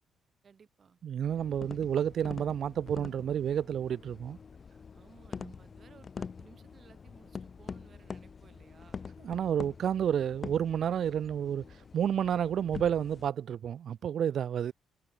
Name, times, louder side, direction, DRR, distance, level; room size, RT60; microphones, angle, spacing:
voice 1, 0.4-1.0 4.9-9.1, right 6 dB, 45° right, 4.4 m, -60 dB
voice 2, 1.0-4.4 5.4-5.5 9.2-11.6 11.9-14.7, right 9 dB, 60° right, 0.3 m, -30 dB
sound 1, 1.2-13.3, left 5 dB, 40° left, 1.1 m, -45 dB
cardioid pair, 90°, 0 cm